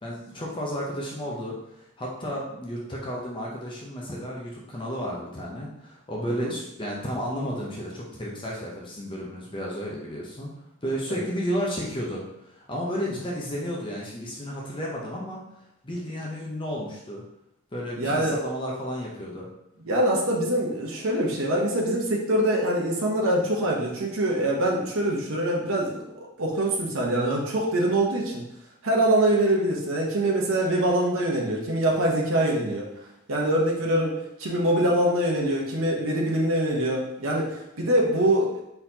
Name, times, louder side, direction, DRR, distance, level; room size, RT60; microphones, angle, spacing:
voice 1, 0.0-10.5 10.8-17.2 17.7-19.5, equal, 25° left, -4 dB, 0.7 m, -32 dB
voice 2, 18.0-18.4 19.9-26.0 26.4-28.4 28.8-32.9 33.3-38.6, right 1 dB, 65° right, -2 dB, 0.9 m, -24 dB
4.2 x 3.9 x 2.8 m, 0.84 s
head